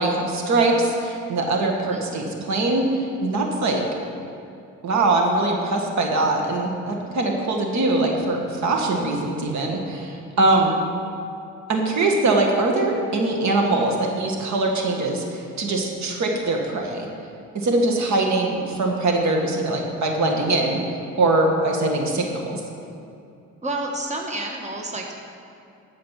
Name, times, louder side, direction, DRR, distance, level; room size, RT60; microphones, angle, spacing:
voice 1, 0.0-3.8 4.8-10.7 11.7-17.1 17.5-20.8 21.2-22.6, right 2 dB, 65° right, 2 dB, 1.8 m, -22 dB
voice 2, 1.9-2.5 23.6-25.1, right 2 dB, 25° right, 1 dB, 1.4 m, -30 dB
14.0 x 5.1 x 7.4 m, 2.6 s
cardioid pair, 90°, 30 cm